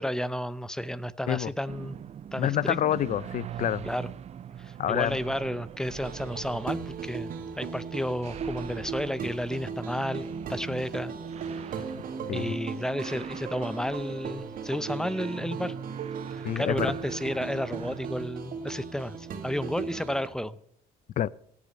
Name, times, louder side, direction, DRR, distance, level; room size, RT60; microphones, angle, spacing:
voice 1, 0.0-2.0 2.3-2.8 3.9-4.1 4.6-7.3 7.6-11.1 11.6-11.7 12.3-15.7 16.3-20.6, equal, 5° left, 0.6 m, -32 dB
sound 1, 1.7-18.3, right 9 dB, 40° right, 0.5 m, -43 dB
voice 2, 2.4-3.8 4.8-5.2 12.3-12.5 16.4-16.9 21.2-21.3, left 11 dB, 50° left, 0.5 m, -27 dB
sound 2, 6.0-20.3, right 5 dB, 55° right, 2.1 m, -37 dB
17.0 x 8.4 x 5.3 m
cardioid pair, 110°, 17 cm